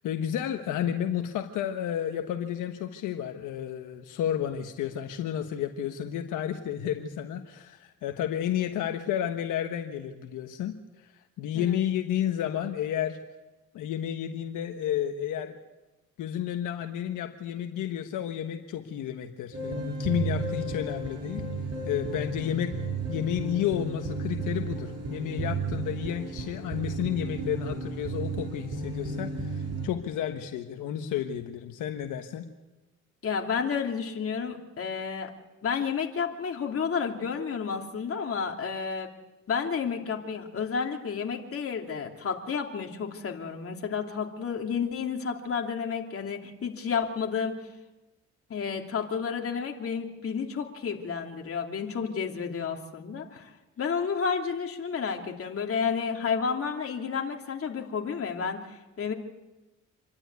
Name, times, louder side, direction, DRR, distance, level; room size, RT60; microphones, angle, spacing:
voice 1, 0.0-10.8 11.0-11.1 11.4-13.2 13.7-15.6 16.2-21.4 21.9-22.8 23.1-32.4, left 10 dB, 85° left, 6 dB, 1.3 m, -31 dB
sound 1, 19.5-29.9, right 3 dB, 55° right, 6.9 m, -33 dB
voice 2, 33.2-35.3 35.6-39.1 39.5-47.5 48.5-59.1, left 6 dB, 50° left, 2 dB, 3.0 m, -31 dB
27.0 x 12.0 x 9.5 m, 1.1 s
cardioid pair, 90°, 30 cm